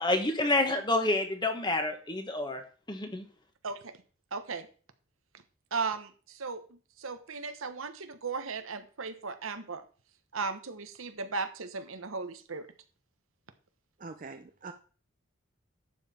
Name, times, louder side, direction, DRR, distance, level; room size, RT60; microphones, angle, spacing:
voice 1, 0.0-2.6 2.9-3.3, left 2 dB, 20° left, 6 dB, 1.4 m, -28 dB
voice 2, 4.3-4.7 5.7-6.1 6.4-6.6 7.0-9.8 10.3-12.7, right 4 dB, 85° right, 9 dB, 1.2 m, -36 dB
voice 3, 14.0-14.7, right 4 dB, 40° right, 7 dB, 0.6 m, -43 dB
11.5 x 7.5 x 4.3 m, 0.40 s
head